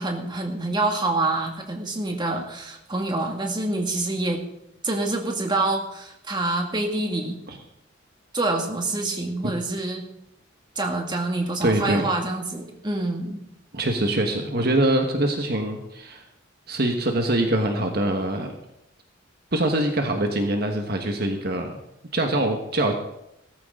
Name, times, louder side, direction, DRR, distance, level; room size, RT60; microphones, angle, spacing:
voice 1, 0.0-4.4 4.8-7.4 8.3-10.0 10.8-13.4, right 2 dB, 25° right, 2 dB, 2.1 m, -26 dB
voice 2, 11.6-12.1 13.7-16.2 16.7-18.5 19.5-21.8 22.1-22.9, right 1 dB, 50° right, 3 dB, 1.5 m, -24 dB
17.5 x 14.0 x 3.8 m, 0.82 s
head